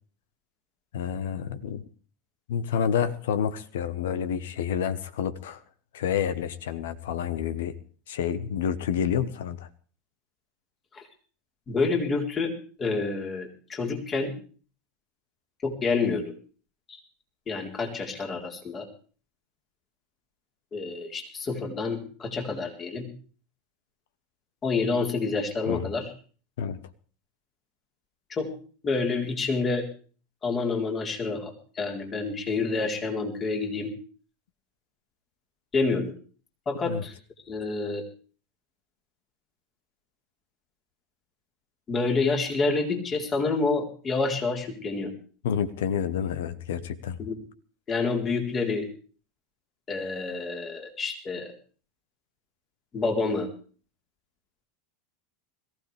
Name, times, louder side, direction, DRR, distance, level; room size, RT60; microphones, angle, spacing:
voice 1, 0.9-1.8 2.5-5.6 5.9-7.7 8.1-9.7 25.7-25.9 26.6-26.8 36.9-37.0 45.4-47.2, left 8 dB, 70° left, 14 dB, 1.2 m, -29 dB
voice 2, 11.7-12.5 12.8-14.4 15.6-16.3 16.9-17.0 17.5-18.9 20.7-23.1 24.6-26.1 28.3-28.5 28.8-29.9 30.4-33.9 35.7-36.1 36.7-37.1 37.5-38.0 41.9-45.1 47.2-47.4 47.9-48.9 49.9-51.5 52.9-53.5, left 4 dB, 30° left, 2 dB, 4.0 m, -28 dB
21.5 x 15.5 x 3.4 m, 0.40 s
hypercardioid pair, 85°, 0 cm